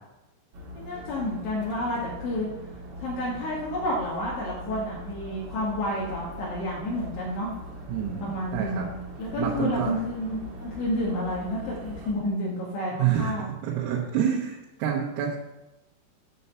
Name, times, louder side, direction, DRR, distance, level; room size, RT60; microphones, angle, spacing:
sound 1, 0.5-12.1, equal, 65° right, 1.4 m, -41 dB
voice 1, 0.8-2.5 3.0-7.5 8.2-8.9 9.2-13.5, left 1 dB, 70° left, -5 dB, 4.1 m, -30 dB
voice 2, 7.9-8.9 9.4-9.9 13.0-13.4 13.6-15.4, right 9 dB, 90° right, -4 dB, 3.9 m, -27 dB
11.0 x 5.5 x 6.9 m, 0.99 s
omnidirectional pair, 5.8 m